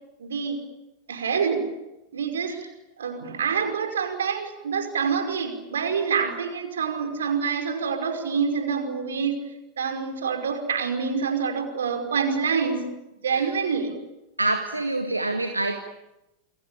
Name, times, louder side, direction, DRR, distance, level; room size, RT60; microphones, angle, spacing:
voice 1, 0.2-0.6 1.1-1.7 2.1-2.6 3.0-9.5 9.8-12.9 13.2-14.0, right 6 dB, 65° right, 6 dB, 5.4 m, -26 dB
voice 2, 14.4-15.8, right 2 dB, 85° right, 6 dB, 1.8 m, -26 dB
29.0 x 23.0 x 8.8 m, 0.98 s
figure-of-eight pair, 90°, 0 cm